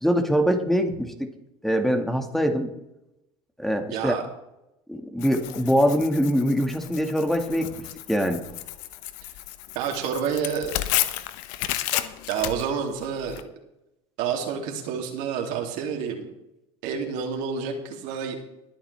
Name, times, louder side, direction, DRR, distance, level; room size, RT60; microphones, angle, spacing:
voice 1, 0.0-1.3 1.6-2.7 3.6-4.1 4.9-7.7 8.1-8.4, equal, ahead, 5 dB, 1.7 m, -23 dB
voice 2, 3.9-4.2 9.7-10.7 12.3-13.4 14.2-16.3 16.8-18.4, right 7 dB, 70° right, 2 dB, 2.7 m, -29 dB
Tearing, 5.2-13.4, left 14 dB, 70° left, 1.0 m, -32 dB
20.5 x 8.6 x 3.4 m, 0.89 s
supercardioid pair, 90°, 14 cm